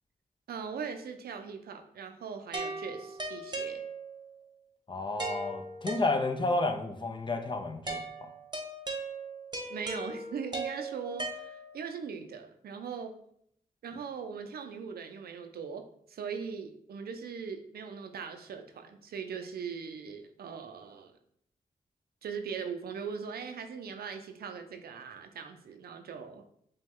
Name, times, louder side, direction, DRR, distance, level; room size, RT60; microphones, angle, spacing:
voice 1, 0.5-3.8 9.7-13.2 13.8-21.1 22.2-26.4, right 6 dB, 80° right, 7 dB, 0.5 m, -40 dB
sound 1, 2.5-4.3 5.2-6.6 7.9-12.0, right 2 dB, 30° right, 1.0 m, -38 dB
voice 2, 4.9-8.3, left 2 dB, 30° left, 4 dB, 0.7 m, -31 dB
5.1 x 2.3 x 3.6 m, 0.68 s
cardioid pair, 50°, 16 cm